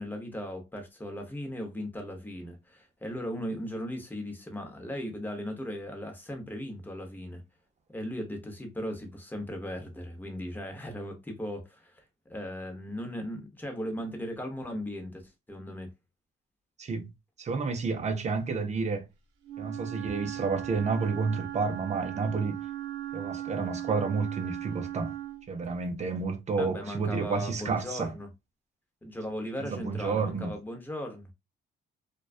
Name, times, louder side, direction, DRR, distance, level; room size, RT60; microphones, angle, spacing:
voice 1, 0.0-7.4 7.9-12.0 12.3-15.2 15.5-15.9 26.6-28.3 29.0-31.2, equal, 10° left, 0.8 m, -37 dB
voice 2, 17.4-19.1 19.6-22.6 23.1-25.1 25.5-28.1 29.6-30.5, right 4 dB, 35° right, 0.5 m, -30 dB
Wind instrument woodwind instrument, 19.4-25.5, right 12 dB, 80° right, 0.6 m, -37 dB
2.3 x 2.2 x 2.4 m
cardioid pair, 90°, 20 cm